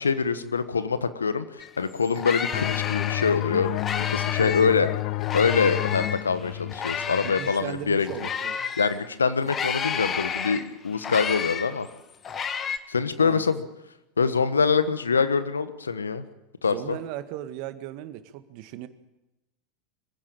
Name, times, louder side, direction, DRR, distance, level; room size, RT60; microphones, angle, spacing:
voice 1, 0.0-3.8 4.1-4.9 5.3-8.1 8.8-11.9 12.9-13.6 14.2-16.2 16.6-17.0, left 5 dB, 85° left, 12 dB, 1.3 m, -24 dB
sound 1, 1.6-1.7 2.0-4.8 5.2-9.0 9.4-12.8, left 6 dB, 30° left, 1.6 m, -31 dB
sound 2, 2.5-7.9, left 20 dB, 50° left, 0.8 m, -30 dB
voice 2, 4.4-4.8 7.2-8.8 13.2-13.4 16.7-18.9, right 12 dB, 55° right, 11 dB, 1.7 m, -37 dB
24.0 x 16.0 x 8.9 m, 0.95 s
figure-of-eight pair, 85°, 0 cm